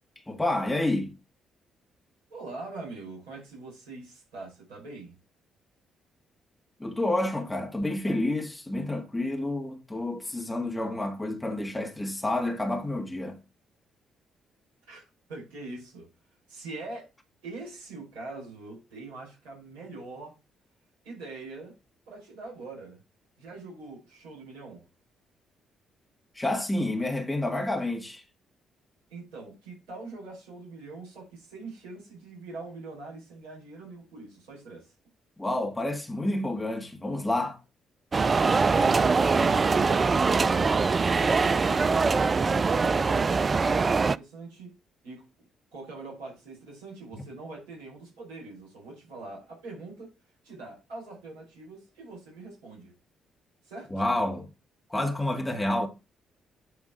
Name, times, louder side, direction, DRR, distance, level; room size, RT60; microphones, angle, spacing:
voice 1, 0.3-1.1 6.8-13.4 26.3-28.2 35.4-37.6 47.1-47.2 53.9-54.5 54.9-55.9, left 1 dB, 15° left, 1.8 m, -29 dB
voice 2, 2.3-5.1 14.9-15.0 15.3-16.1 16.5-17.1 17.4-20.3 21.0-21.7 22.1-23.0 23.4-24.8 29.1-34.9 42.4-43.3 43.6-44.7 45.0-45.5 45.7-50.1 50.4-52.9 53.6-53.9, right 3 dB, 75° right, 4.8 m, -43 dB
sound 1, 38.1-44.2, right 4 dB, 35° right, 0.3 m, -23 dB
9.4 x 3.4 x 5.6 m
figure-of-eight pair, 40°, 0 cm